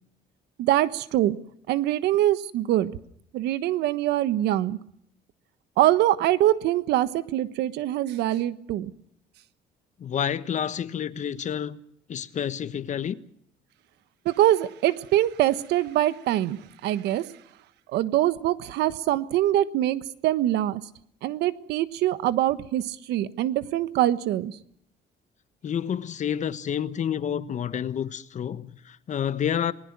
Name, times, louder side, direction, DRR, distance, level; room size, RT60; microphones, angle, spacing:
voice 1, 0.6-1.4 1.7-2.9 3.3-4.8 5.8-8.9 14.2-17.3 17.9-20.8 21.2-24.6, right 13 dB, 85° right, 1.4 m, -24 dB
voice 2, 10.0-11.8 12.1-13.2 25.6-29.7, left 9 dB, 45° left, 1.3 m, -29 dB
27.5 x 20.5 x 6.1 m
cardioid pair, 110°, 17 cm